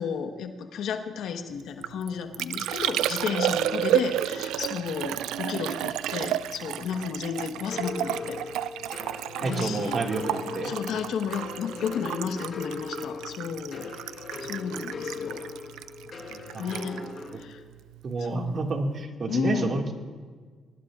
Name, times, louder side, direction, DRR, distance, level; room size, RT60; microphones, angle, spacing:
voice 1, 0.0-8.4 9.4-10.0 10.5-13.9 14.4-15.4 16.6-17.0 17.4-17.6 18.2-18.6 19.3-19.8, left 7 dB, 80° left, 6 dB, 1.3 m, -32 dB
Liquid, 1.6-18.2 18.5-19.0, right 12 dB, 90° right, 0.4 m, -32 dB
sound 1, 7.7-17.3, left 4 dB, 45° left, 5.7 m, -39 dB
voice 2, 9.4-10.7 16.3-17.1 18.0-19.9, right 3 dB, 50° right, 2 dB, 2.1 m, -30 dB
21.5 x 20.0 x 2.5 m, 1.5 s
cardioid pair, 90°, 0 cm